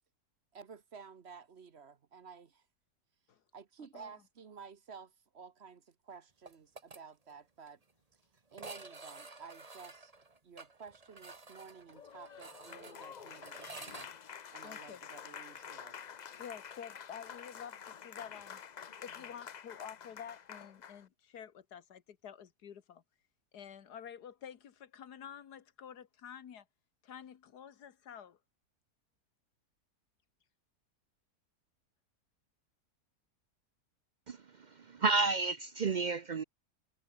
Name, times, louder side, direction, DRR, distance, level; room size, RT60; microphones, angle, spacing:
voice 1, 0.5-2.6 3.5-7.8 8.5-10.1 10.4-14.1 14.5-16.0, right 5 dB, 45° right, 1.2 m, -53 dB
sound 1, 6.5-7.0 7.3-7.4 7.7-7.8 8.5-14.1, right 3 dB, 25° right, 1.6 m, -51 dB
Applause, 11.9-21.1, left 7 dB, 65° left, 0.4 m, -49 dB
voice 2, 14.6-15.0 16.4-18.6 19.0-23.0 23.5-26.7 27.0-28.4, left 8 dB, 90° left, 1.9 m, -49 dB
voice 3, 34.3-36.4, right 3 dB, 65° right, 0.4 m, -32 dB
omnidirectional pair, 1.7 m